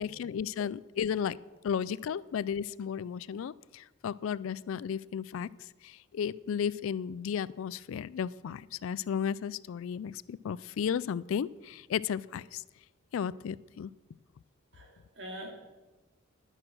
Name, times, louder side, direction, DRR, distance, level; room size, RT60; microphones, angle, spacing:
voice 1, 0.0-1.4 1.6-5.5 5.8-12.6 13.1-13.9, left 7 dB, 65° left, 20 dB, 0.3 m, -34 dB
voice 2, 14.7-15.5, equal, 55° right, 1 dB, 2.7 m, -45 dB
11.0 x 10.5 x 6.2 m, 1.1 s
head